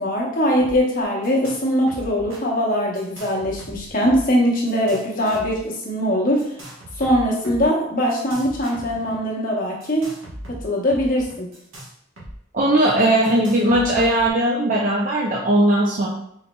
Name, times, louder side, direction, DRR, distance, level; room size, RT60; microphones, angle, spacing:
voice 1, 0.0-6.6 7.0-10.1 10.6-11.5, equal, 45° left, -3 dB, 0.9 m, -21 dB
sound 1, 0.6-0.8 1.0-1.6 1.9-2.4 2.9-4.3 4.7-5.6 6.4-7.6 8.1-9.2 9.8-12.3 12.6-12.7 13.2-14.3, right 1 dB, 80° right, 1.2 m, -39 dB
voice 2, 12.5-16.1, right 1 dB, 40° right, -3 dB, 0.4 m, -18 dB
4.0 x 4.0 x 2.2 m, 0.72 s
head